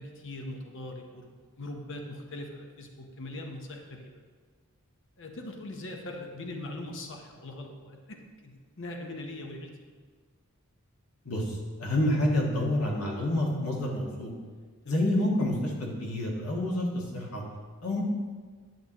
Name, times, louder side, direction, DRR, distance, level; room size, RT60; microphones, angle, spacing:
voice 1, 0.0-4.1 5.2-9.7 14.9-15.0, left 1 dB, 60° left, 3 dB, 0.9 m, -41 dB
voice 2, 11.2-14.3 14.8-17.4 17.8-18.0, left 1 dB, 75° left, -2 dB, 1.6 m, -28 dB
10.5 x 6.8 x 3.0 m, 1.5 s
head